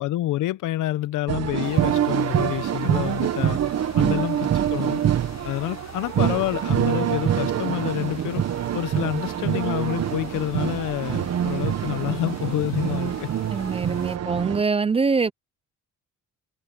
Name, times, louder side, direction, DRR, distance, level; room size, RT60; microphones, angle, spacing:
voice 1, 0.0-3.6 3.9-5.0 5.4-8.4 8.7-13.3, left 15 dB, 85° left, 0.8 m, -28 dB
sound 1, 1.3-14.6, right 10 dB, 60° right, 1.2 m, -25 dB
sound 2, 1.6-14.2, left 10 dB, 65° left, 1.6 m, -45 dB
voice 2, 13.5-15.3, right 4 dB, 20° right, 0.4 m, -24 dB
cardioid pair, 90°, 30 cm